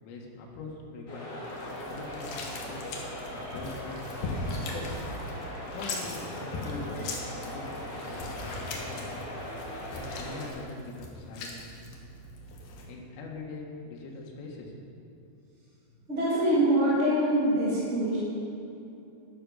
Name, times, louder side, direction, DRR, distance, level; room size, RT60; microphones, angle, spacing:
voice 1, 0.0-1.3 1.6-3.0 3.3-4.9 5.7-7.0 7.4-9.2 9.6-11.6 12.8-14.7, left 3 dB, 90° left, -1 dB, 4.1 m, -42 dB
sound 1, 1.1-10.5, left 1 dB, 30° left, 2.5 m, -40 dB
sound 2, 1.4-12.8, left 2 dB, 60° left, 2.5 m, -40 dB
voice 2, 16.1-18.2, right 1 dB, 20° right, -9 dB, 2.1 m, -24 dB
12.0 x 12.0 x 5.5 m, 2.8 s
omnidirectional pair, 5.6 m